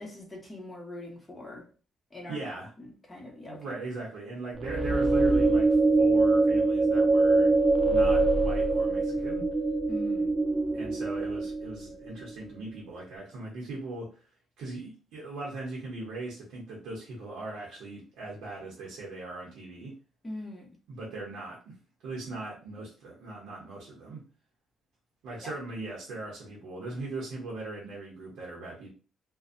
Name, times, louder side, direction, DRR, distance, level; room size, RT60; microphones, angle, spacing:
voice 1, 0.0-1.6 2.1-2.4 2.8-3.6 9.9-10.4 20.2-20.7 25.4-25.5, left 2 dB, 20° left, -1 dB, 1.0 m, -42 dB
voice 2, 2.3-2.7 3.5-7.6 7.9-9.5 10.7-14.1 14.6-19.9 20.9-21.8 22.0-24.2 25.2-28.9, right 2 dB, 85° right, -3 dB, 0.7 m, -39 dB
sound 1, 4.6-11.9, right 3 dB, 30° right, 0.4 m, -24 dB
2.5 x 2.1 x 2.5 m, 0.36 s
cardioid pair, 90°, 0 cm